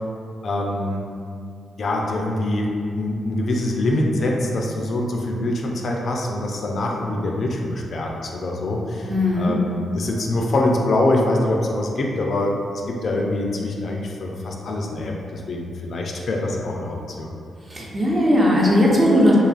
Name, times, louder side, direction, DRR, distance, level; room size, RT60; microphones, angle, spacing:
voice 1, 0.4-1.0 1.8-2.7 2.9-12.6 12.9-17.3, left 1 dB, 60° left, 0 dB, 0.3 m, -24 dB
voice 2, 9.1-9.6 17.7-19.3, left 1 dB, 35° right, -5 dB, 0.7 m, -18 dB
2.8 x 2.3 x 2.4 m, 2.3 s
hypercardioid pair, 45°, 0 cm